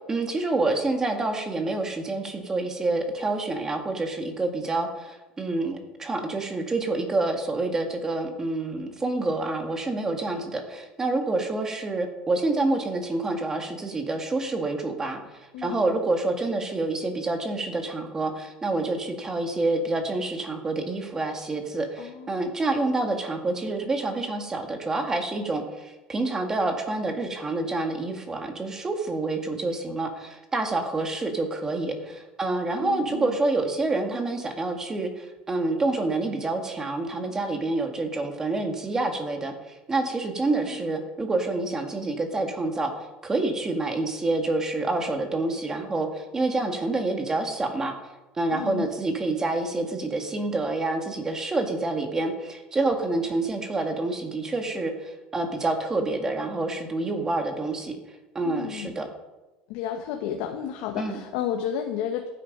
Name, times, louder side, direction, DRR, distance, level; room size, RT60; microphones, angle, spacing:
voice 1, 0.1-42.9 43.2-47.9 48.4-58.0 58.3-59.1 61.0-61.2, right 2 dB, 15° right, 4 dB, 2.0 m, -27 dB
voice 2, 22.0-22.3 32.8-33.4 40.5-40.8 48.5-48.9 58.4-58.9 59.7-62.3, left 9 dB, 75° left, 4 dB, 1.3 m, -32 dB
15.0 x 9.2 x 5.4 m, 1.1 s
cardioid pair, 140°, 3 cm